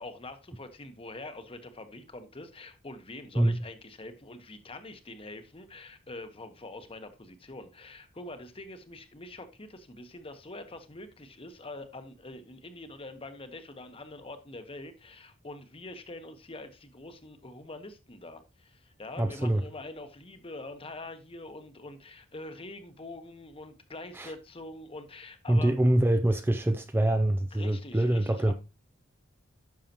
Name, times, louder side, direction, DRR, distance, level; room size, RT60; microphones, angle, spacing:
voice 1, 0.0-25.7 27.5-28.5, left 2 dB, 30° left, 1.1 m, -44 dB
voice 2, 19.2-19.6 24.1-24.3 25.5-28.5, right 1 dB, 10° right, 0.4 m, -25 dB
10.5 x 6.6 x 2.9 m
head